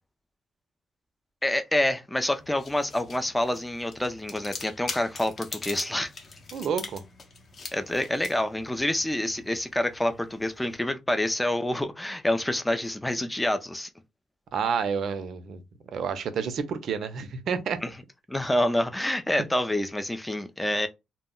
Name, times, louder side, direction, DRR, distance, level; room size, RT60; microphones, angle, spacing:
voice 1, 1.4-6.1 7.7-13.9 17.8-18.0 18.3-20.9, left 1 dB, 10° left, 0.3 m, -27 dB
sound 1, 2.3-10.8, left 4 dB, 40° left, 0.6 m, -43 dB
voice 2, 6.5-7.0 14.5-15.6 15.9-17.8, right 6 dB, 60° right, 0.4 m, -29 dB
2.1 x 2.0 x 3.6 m
cardioid pair, 125°, 0 cm